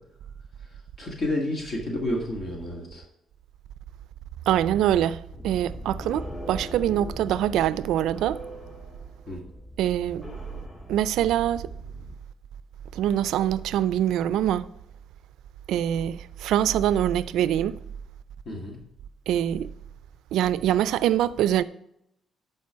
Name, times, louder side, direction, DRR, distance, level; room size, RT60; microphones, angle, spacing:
voice 1, 0.6-3.0 9.3-9.4 18.5-18.8, left 1 dB, 55° left, 1.9 m, -31 dB
voice 2, 4.5-8.4 9.8-10.3 10.9-11.7 12.9-14.7 15.7-17.8 19.3-19.7 20.3-21.6, right 11 dB, 85° right, 0.3 m, -24 dB
sound 1, 5.3-12.1, equal, 25° left, 1.7 m, -40 dB
10.5 x 4.6 x 4.6 m
cardioid pair, 90°, 0 cm